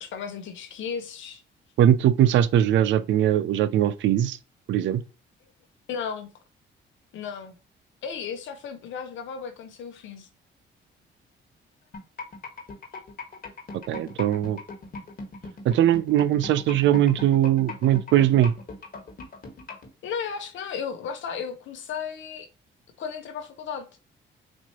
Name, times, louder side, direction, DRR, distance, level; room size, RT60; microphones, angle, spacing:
voice 1, 0.0-1.4 5.9-6.3 7.1-7.5 8.0-10.3 20.0-22.5 23.0-23.9, left 6 dB, 75° left, 0.9 m, -34 dB
voice 2, 1.8-4.4 4.7-5.0 13.9-14.6 15.6-18.5, right 11 dB, 70° right, 0.5 m, -20 dB
sound 1, 11.9-19.9, left 3 dB, 45° left, 1.6 m, -38 dB
4.3 x 3.0 x 2.8 m
cardioid pair, 90°, 20 cm